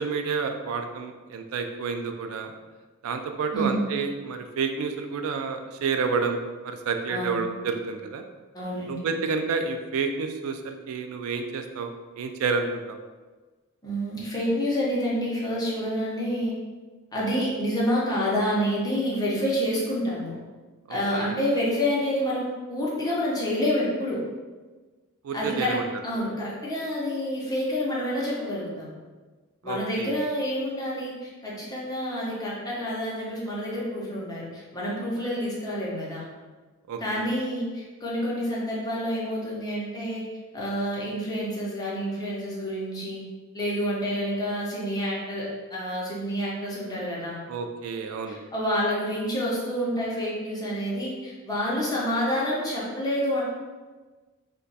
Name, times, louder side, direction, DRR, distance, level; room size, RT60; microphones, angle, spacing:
voice 1, 0.0-2.5 3.0-6.4 6.6-8.2 8.9-11.9 12.2-13.0 20.9-21.4 25.2-25.9 29.6-30.1 36.9-37.3 47.5-48.4, right 5 dB, 75° right, 6 dB, 0.3 m, -29 dB
voice 2, 7.1-7.5 8.5-9.0 13.8-16.5 17.1-20.3 20.9-24.2 25.3-25.8 26.0-28.9 29.6-36.3 37.0-40.2 40.5-43.2 43.5-47.4 48.3-53.4, equal, 20° left, -6 dB, 0.7 m, -28 dB
2.5 x 2.2 x 3.9 m, 1.3 s
head